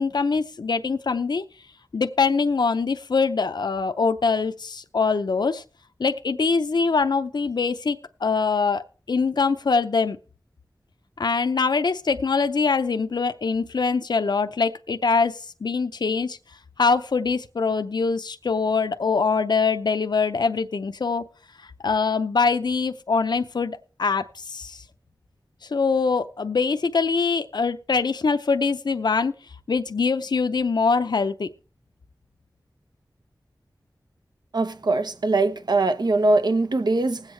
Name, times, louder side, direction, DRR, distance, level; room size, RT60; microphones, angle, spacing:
voice 1, 0.0-1.4 1.9-5.6 6.0-10.2 11.2-16.4 16.8-21.3 21.6-24.8 25.6-29.3 29.7-31.5, left 4 dB, 70° left, 0.6 m, -23 dB
voice 2, 34.5-37.2, right 2 dB, 70° right, 0.9 m, -22 dB
20.0 x 8.1 x 3.3 m
wide cardioid pair, 65°, 8 cm